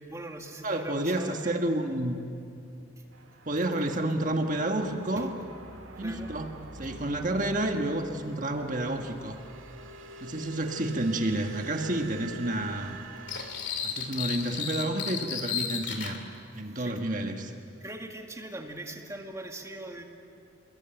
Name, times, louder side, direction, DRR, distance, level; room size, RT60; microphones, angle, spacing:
voice 1, 0.0-1.5 5.2-5.3 6.0-6.3 16.6-16.9 17.8-20.0, right 1 dB, 15° right, 2 dB, 2.2 m, -41 dB
voice 2, 0.6-2.2 3.4-5.3 6.0-9.4 10.2-13.0 13.8-16.2 16.5-17.5, right 1 dB, 40° right, 4 dB, 1.6 m, -30 dB
sound 1, 3.1-13.5, right 2 dB, 80° right, 2.1 m, -46 dB
sound 2, 13.3-16.2, left 7 dB, 60° left, 3.0 m, -33 dB
28.0 x 21.5 x 9.1 m, 2.5 s
head